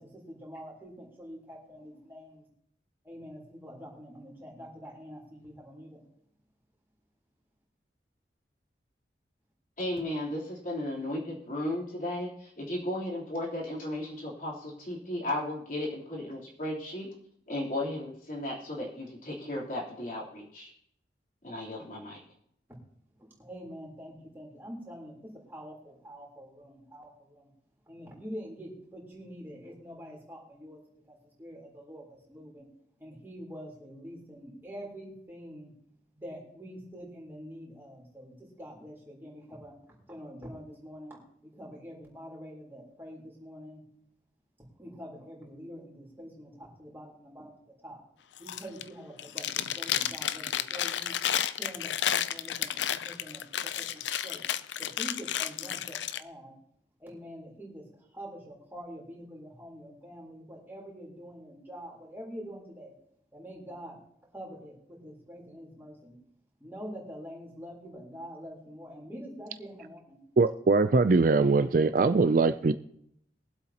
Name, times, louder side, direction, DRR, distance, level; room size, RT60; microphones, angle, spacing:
voice 1, 0.0-2.5 3.0-6.0 23.2-27.5 27.9-30.8 31.1-32.7 33.0-35.7 36.2-39.7 40.1-43.8 44.8-48.0 48.4-51.2 51.6-54.4 54.8-56.5 57.0-57.8 58.1-62.9 63.3-64.0 64.3-66.2 66.6-70.2, equal, 15° right, -4 dB, 3.6 m, -45 dB
voice 2, 9.8-17.1 17.5-20.7 21.4-22.2, left 1 dB, 50° left, -4 dB, 3.4 m, -35 dB
Chewing mastication, 48.4-48.9 49.2-56.2, left 10 dB, 85° left, 0.5 m, -31 dB
voice 3, 70.4-72.7, right 3 dB, 50° right, 12 dB, 0.4 m, -22 dB
22.5 x 7.9 x 2.9 m, 0.71 s
head